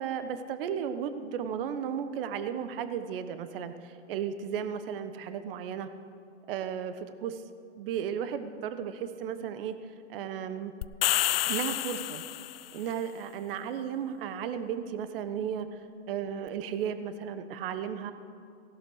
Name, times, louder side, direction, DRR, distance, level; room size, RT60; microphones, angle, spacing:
voice 1, 0.0-5.9 6.5-7.4 7.8-9.8 10.1-10.7 11.5-12.2 12.7-15.8 16.1-18.1, right 8 dB, 50° right, 10 dB, 1.2 m, -34 dB
sound 1, 10.8-12.7, left 14 dB, 55° left, 0.6 m, -29 dB
18.0 x 12.0 x 6.5 m, 2.5 s
hypercardioid pair, 125°, 36 cm